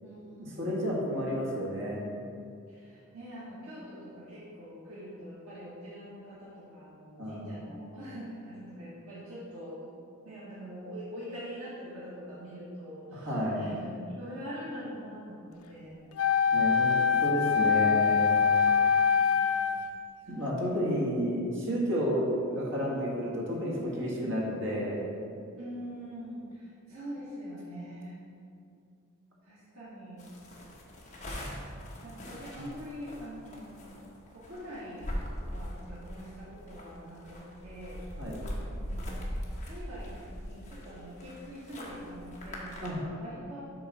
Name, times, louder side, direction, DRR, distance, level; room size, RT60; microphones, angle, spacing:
voice 1, 0.0-0.9 2.7-9.9 10.2-16.1 19.1-19.7 20.2-20.4 20.8-21.1 25.6-28.1 29.4-30.3 31.2-33.8 34.3-35.1 35.4-38.0 38.7-39.2 39.6-42.7 43.0-43.6, equal, 80° right, -9 dB, 1.6 m, -44 dB
voice 2, 0.6-2.0 7.2-7.5 13.1-13.6 16.5-16.9 17.2-18.4 20.3-25.0 32.5-32.6 38.2-38.4 42.8-43.0, equal, 60° right, -4 dB, 1.8 m, -31 dB
Wind instrument woodwind instrument, 16.2-19.9, left 6 dB, 85° left, 0.4 m, -24 dB
sound 1, 30.2-42.9, equal, 35° left, 1.2 m, -41 dB
7.8 x 3.9 x 6.1 m, 2.4 s
head